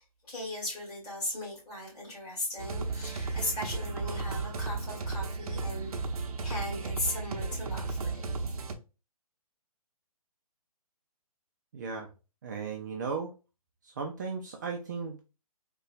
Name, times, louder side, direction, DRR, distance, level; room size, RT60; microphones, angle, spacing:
voice 1, 0.0-5.9 6.4-8.3, left 1 dB, 20° left, -6 dB, 1.8 m, -37 dB
sound 1, 2.6-8.7, right 3 dB, 70° right, 0.6 m, -34 dB
voice 2, 11.7-12.1 12.4-13.3 13.8-15.2, right 5 dB, 30° right, 1 dB, 0.4 m, -36 dB
3.9 x 2.3 x 2.4 m, 0.31 s
hypercardioid pair, 155°, 19 cm